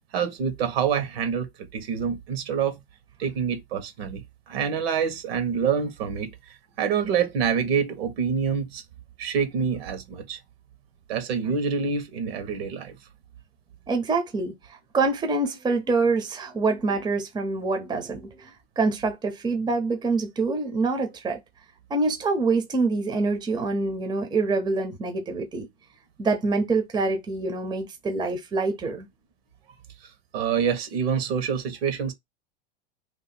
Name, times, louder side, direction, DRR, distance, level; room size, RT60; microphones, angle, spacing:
voice 1, 0.1-2.8 3.2-8.8 9.2-10.4 11.1-13.0 30.3-32.1, right 7 dB, 75° right, 1.3 m, -26 dB
voice 2, 13.9-21.4 21.9-25.7 26.2-29.1, right 3 dB, 15° right, 0.7 m, -26 dB
2.9 x 2.6 x 4.1 m
supercardioid pair, 120°, 31 cm